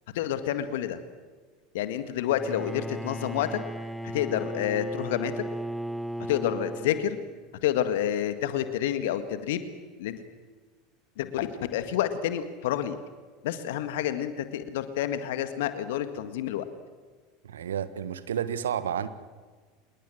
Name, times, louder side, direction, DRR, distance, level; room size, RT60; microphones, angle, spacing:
voice 1, 0.1-1.0 1.7-3.6 4.0-5.4 6.3-7.2 7.6-9.7 10.0-10.2 11.2-13.0 13.4-16.6, left 11 dB, 65° left, 1.8 m, -29 dB
Bowed string instrument, 2.2-7.5, right 1 dB, ahead, 0.8 m, -36 dB
voice 2, 17.4-19.1, right 8 dB, 75° right, 1.5 m, -31 dB
27.5 x 21.5 x 7.7 m
figure-of-eight pair, 80°, 0 cm